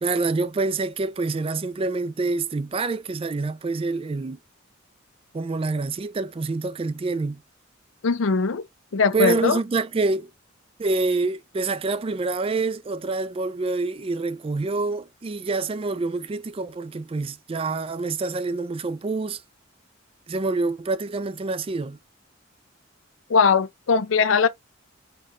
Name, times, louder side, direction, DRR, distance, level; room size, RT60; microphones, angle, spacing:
voice 1, 0.0-4.4 5.3-7.4 9.1-10.3 10.8-19.4 20.3-22.0, right 3 dB, 30° right, 0.4 m, -26 dB
voice 2, 8.0-8.6 8.9-9.6 23.3-24.5, left 5 dB, 75° left, 0.5 m, -20 dB
4.5 x 2.5 x 2.9 m
head